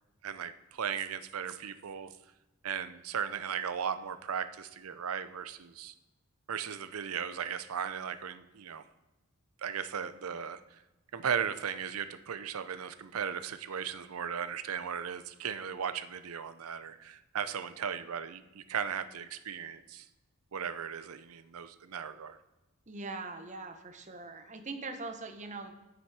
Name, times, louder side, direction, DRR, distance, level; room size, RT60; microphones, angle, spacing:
voice 1, 0.2-2.1 2.6-5.9 6.5-8.8 9.6-10.8 11.1-20.1 20.5-22.4, right 7 dB, 75° right, 12 dB, 0.6 m, -37 dB
voice 2, 22.9-25.8, right 3 dB, 35° right, 6 dB, 0.8 m, -41 dB
9.9 x 6.2 x 4.7 m, 1.0 s
head